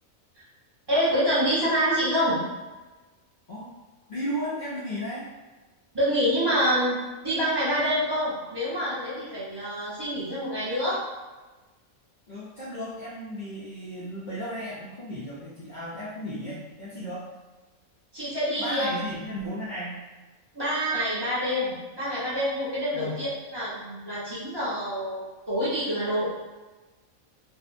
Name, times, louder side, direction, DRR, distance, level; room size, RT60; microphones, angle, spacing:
voice 1, 0.9-2.4 5.9-11.0 18.1-18.9 20.5-26.3, equal, 30° right, -10 dB, 0.5 m, -26 dB
voice 2, 4.1-5.3 12.3-17.3 18.6-19.9 22.9-23.2, equal, 80° left, -9 dB, 0.4 m, -34 dB
2.6 x 2.1 x 2.5 m, 1.2 s
omnidirectional pair, 1.4 m